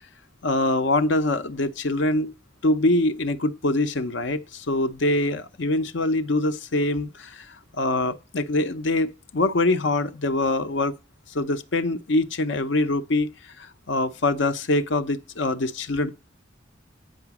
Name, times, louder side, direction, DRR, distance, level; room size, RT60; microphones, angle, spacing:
voice 1, 0.4-2.3 2.6-7.5 7.7-10.9 11.3-13.3 13.6-16.1, left 2 dB, 70° left, 0.7 m, -24 dB
9.1 x 4.9 x 5.9 m
head